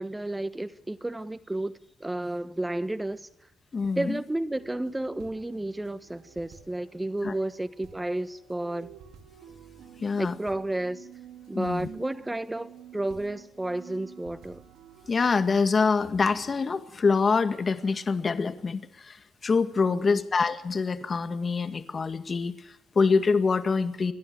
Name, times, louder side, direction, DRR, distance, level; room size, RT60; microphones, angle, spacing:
voice 1, 0.0-3.3 4.0-8.9 10.2-11.1 11.5-14.6 19.9-20.3, right 1 dB, 10° right, 1.3 m, -32 dB
voice 2, 3.7-4.2 7.2-7.3 10.0-10.3 11.5-11.9 15.1-24.1, left 4 dB, 35° left, 1.9 m, -25 dB
sound 1, 4.5-15.1, right 9 dB, 80° right, 2.4 m, -50 dB
28.5 x 11.5 x 9.4 m
cardioid pair, 90°, 0 cm